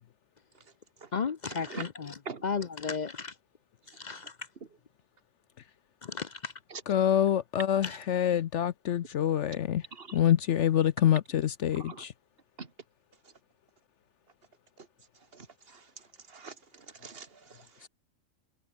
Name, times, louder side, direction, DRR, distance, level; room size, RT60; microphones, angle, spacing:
voice 1, 1.1-2.1 2.4-3.3 4.0-4.3 6.0-6.5, left 5 dB, 45° left, 0.6 m, -34 dB
voice 2, 6.9-9.8 10.1-12.1 17.8-17.9, left 10 dB, 65° left, 0.9 m, -26 dB
voice 3, 11.7-12.1 12.6-12.7 13.2-13.3 14.8-14.9 15.1-17.9, right 5 dB, 45° right, 2.0 m, -45 dB
omnidirectional pair, 1.4 m